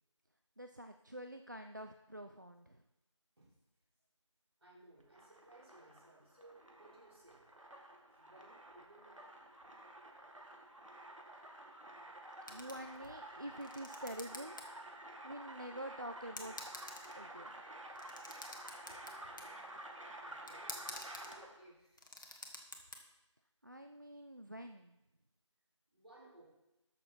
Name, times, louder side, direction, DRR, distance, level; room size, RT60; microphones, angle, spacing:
voice 1, 0.6-2.8 12.5-14.6 15.2-16.6 17.1-17.6 23.6-25.0, right 1 dB, 40° right, 7 dB, 0.4 m, -47 dB
voice 2, 4.6-7.5 8.1-9.3 18.8-22.0 25.9-26.4, right 2 dB, 55° right, -5 dB, 4.2 m, -62 dB
sound 1, 5.0-21.6, right 1 dB, 80° right, 1.8 m, -51 dB
sound 2, 12.5-13.2 13.5-14.6 15.0-15.1 15.9-16.0 16.4-17.3 17.9-19.5 20.5-21.3 21.8-23.0, left 2 dB, 40° left, 1.2 m, -49 dB
13.0 x 6.5 x 4.4 m, 0.95 s
figure-of-eight pair, 170°, 16 cm